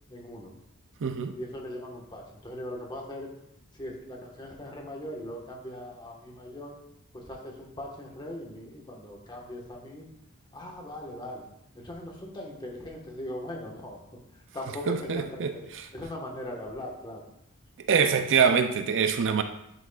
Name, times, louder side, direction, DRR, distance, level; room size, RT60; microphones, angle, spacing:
voice 1, 0.1-0.5 1.3-3.3 3.8-6.7 7.1-10.1 10.5-11.5 11.7-14.0 14.3-17.3, left 1 dB, 20° left, 1.3 m, -40 dB
voice 2, 1.0-1.4 14.9-15.5 17.9-19.4, right 6 dB, 60° right, 0.5 m, -24 dB
10.5 x 6.1 x 2.4 m
head